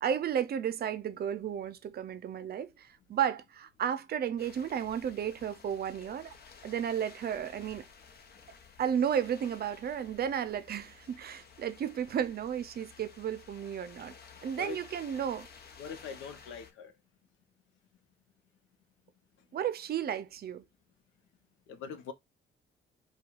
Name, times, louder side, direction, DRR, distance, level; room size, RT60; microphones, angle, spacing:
voice 1, 0.0-6.3 6.6-7.9 8.8-14.1 14.4-15.5 19.5-20.6, right 9 dB, 50° right, 0.5 m, -33 dB
sound 1, 4.4-16.7, left 5 dB, 50° left, 0.9 m, -54 dB
voice 2, 15.8-16.9 21.7-22.1, left 7 dB, 85° left, 0.7 m, -42 dB
4.4 x 2.3 x 2.4 m
cardioid pair, 90°, 20 cm